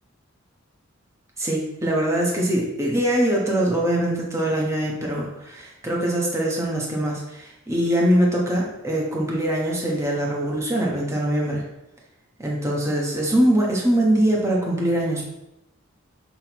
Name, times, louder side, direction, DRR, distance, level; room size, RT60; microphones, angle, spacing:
voice 1, 1.4-11.6 12.4-15.3, right 1 dB, 15° right, -3 dB, 1.2 m, -22 dB
6.3 x 6.0 x 3.0 m, 0.90 s
head